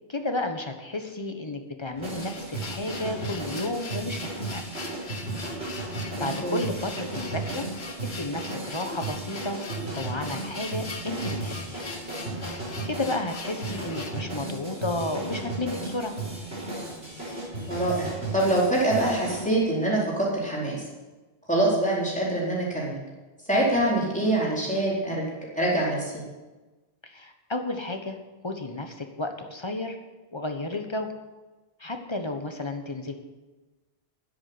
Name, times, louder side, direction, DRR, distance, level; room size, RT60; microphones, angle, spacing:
voice 1, 0.1-4.6 6.2-7.7 8.0-9.6 9.9-11.8 12.8-16.1 27.0-28.2 28.4-30.0 30.3-31.1 31.8-33.1, left 2 dB, 25° left, 5 dB, 1.3 m, -32 dB
sound 1, 1.9-14.2, left 4 dB, 75° left, 1.5 m, -42 dB
sound 2, 2.0-19.4, right 2 dB, 90° right, 4.2 m, -35 dB
voice 2, 6.2-6.6 17.7-20.8 21.5-23.0 23.5-25.3 25.5-26.1, right 1 dB, 5° left, -6 dB, 4.2 m, -25 dB
10.0 x 8.4 x 9.6 m, 1.2 s
omnidirectional pair, 1.1 m